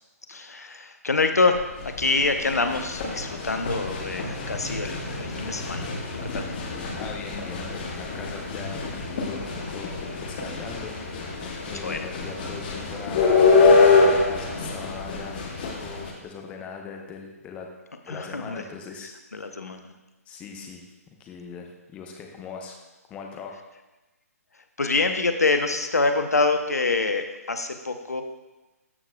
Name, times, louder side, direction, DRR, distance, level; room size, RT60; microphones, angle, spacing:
voice 1, 0.3-6.6 11.8-12.1 18.1-18.6 19.3-19.9 24.8-28.2, left 3 dB, 70° left, 7 dB, 0.7 m, -26 dB
sound 1, 1.6-16.1, left 4 dB, 35° left, 1.2 m, -25 dB
voice 2, 7.0-9.9 10.2-15.4 15.7-17.7 18.1-19.5 20.3-20.8 21.2-22.8 23.1-23.6, left 5 dB, 15° left, 2 dB, 0.8 m, -40 dB
13.0 x 6.5 x 2.2 m, 1.1 s
figure-of-eight pair, 135°, 9 cm